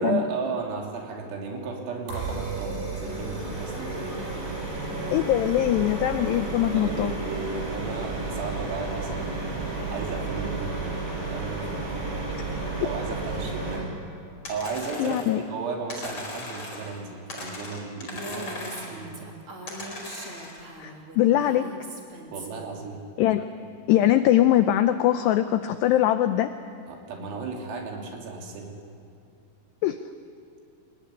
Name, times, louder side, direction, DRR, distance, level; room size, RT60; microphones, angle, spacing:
voice 1, 0.0-4.3 6.8-9.4 9.9-10.8 11.3-12.1 12.8-14.0 14.5-18.5 18.9-19.3 22.3-23.0 26.9-28.7, right 4 dB, 85° right, 0 dB, 5.8 m, -34 dB
sound 1, 2.1-13.8, right 3 dB, 65° right, 8.4 m, -32 dB
voice 2, 5.1-7.1 15.0-15.4 20.8-21.7 23.2-23.5 23.9-26.5 29.8-30.0, left 12 dB, 90° left, 9 dB, 2.4 m, -22 dB
sound 2, 14.4-15.4 15.9-17.0 17.3-19.0 19.7-20.6, left 2 dB, 30° left, 4.8 m, -38 dB
Female speech woman speaking, 18.1-22.7, right 1 dB, 30° right, 3.1 m, -40 dB
26.0 x 20.0 x 9.9 m, 2.6 s
omnidirectional pair, 5.9 m